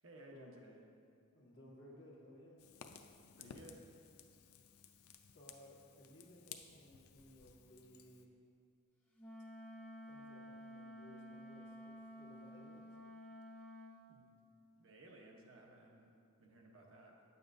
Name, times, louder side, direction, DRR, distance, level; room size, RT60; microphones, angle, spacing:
voice 1, 0.0-0.8 3.4-3.9 14.1-14.3 14.8-17.2, right 1 dB, 65° right, -1 dB, 0.9 m, -58 dB
voice 2, 1.3-2.6 5.2-8.3 10.1-12.9, equal, 55° left, -5 dB, 1.4 m, -60 dB
Fire, 2.6-8.3, left 7 dB, 85° left, 0.4 m, -57 dB
Wind instrument woodwind instrument, 9.2-14.0, left 1 dB, 10° left, 0.6 m, -52 dB
9.0 x 6.9 x 2.6 m, 2.4 s
head